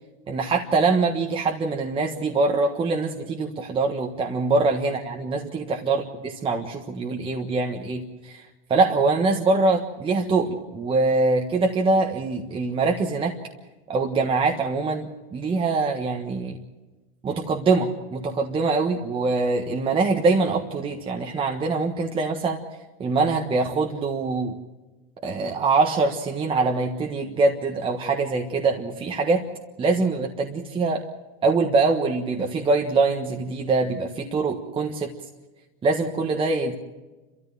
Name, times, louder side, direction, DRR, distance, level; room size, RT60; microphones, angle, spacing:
voice 1, 0.3-8.0 8.3-8.4 8.7-13.4 13.9-16.6 17.2-22.6 23.0-24.5 25.2-29.4 29.8-31.0 31.4-35.1 35.8-36.8, right 3 dB, 15° right, 1 dB, 1.4 m, -23 dB
29.5 x 13.5 x 7.6 m, 1.1 s
supercardioid pair, 145°, 31 cm